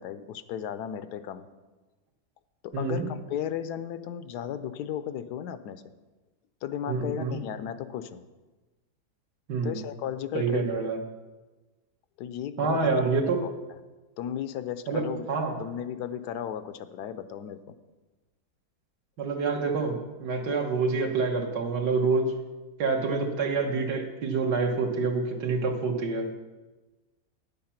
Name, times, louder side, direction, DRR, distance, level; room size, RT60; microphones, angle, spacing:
voice 1, 0.0-1.5 2.6-5.8 6.6-8.2 9.6-10.9 12.2-12.9 13.4-13.5 14.2-15.3 15.6-17.8, left 9 dB, 80° left, 12 dB, 1.2 m, -35 dB
voice 2, 2.7-3.0 6.9-7.4 9.5-9.8 10.3-11.0 12.6-13.4 14.9-15.6 19.2-22.4 22.8-26.3, right 4 dB, 80° right, 2 dB, 1.8 m, -27 dB
10.0 x 7.7 x 5.8 m, 1.2 s
omnidirectional pair, 1.7 m